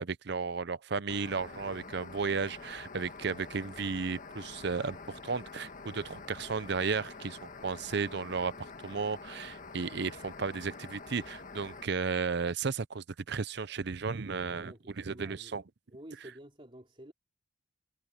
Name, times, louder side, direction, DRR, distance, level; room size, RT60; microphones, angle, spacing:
voice 1, 0.0-15.6, right 5 dB, 60° right, 0.7 m, -34 dB
sound 1, 1.1-11.9, left 3 dB, 45° left, 1.5 m, -47 dB
voice 2, 1.5-1.9 14.4-15.5 15.9-17.1, right 1 dB, 30° right, 3.8 m, -51 dB
head